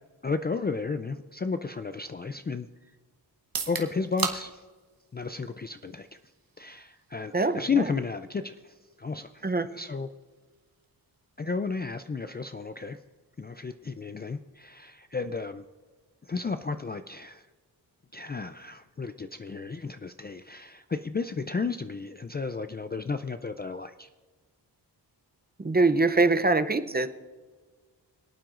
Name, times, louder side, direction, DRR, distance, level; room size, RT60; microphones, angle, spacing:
voice 1, 0.2-2.7 3.7-4.6 5.1-6.1 6.6-10.1 11.4-13.0 13.4-15.6 16.2-17.5 18.1-24.1, left 4 dB, 25° left, 9 dB, 0.3 m, -33 dB
sound 1, 3.4-17.2, right 5 dB, 60° right, 1.3 m, -43 dB
voice 2, 7.3-7.9 9.4-9.7 25.6-27.1, right 3 dB, 25° right, 10 dB, 0.6 m, -23 dB
26.5 x 8.9 x 2.5 m, 1.4 s
wide cardioid pair, 125°, 41 cm